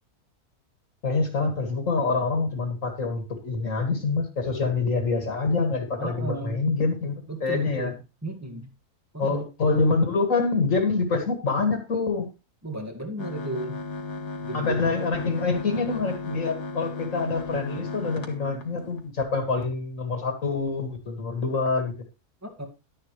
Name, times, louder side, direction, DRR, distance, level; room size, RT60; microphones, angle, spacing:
voice 1, 1.0-7.9 9.2-12.3 14.5-21.9, left 4 dB, 55° left, 4 dB, 2.5 m, -26 dB
voice 2, 6.0-6.7 7.3-8.7 9.1-9.5 12.6-13.8 14.4-15.0 22.4-22.7, right 2 dB, 10° right, 3 dB, 2.0 m, -34 dB
sound 1, 13.2-19.1, left 3 dB, 85° left, 2.3 m, -35 dB
12.0 x 10.5 x 3.2 m, 0.29 s
omnidirectional pair, 1.7 m